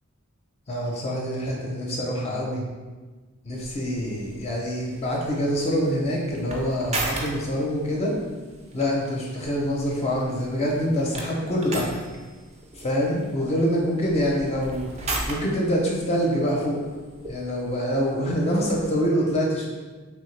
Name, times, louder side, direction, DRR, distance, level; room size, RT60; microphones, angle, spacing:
voice 1, 0.7-2.6 3.4-8.1 8.7-12.0 12.7-14.9 15.3-16.8 17.2-19.7, equal, 30° left, -2 dB, 0.5 m, -25 dB
sound 1, 3.5-19.0, right 2 dB, 30° right, 0.4 m, -38 dB
3.1 x 2.8 x 3.1 m, 1.3 s
head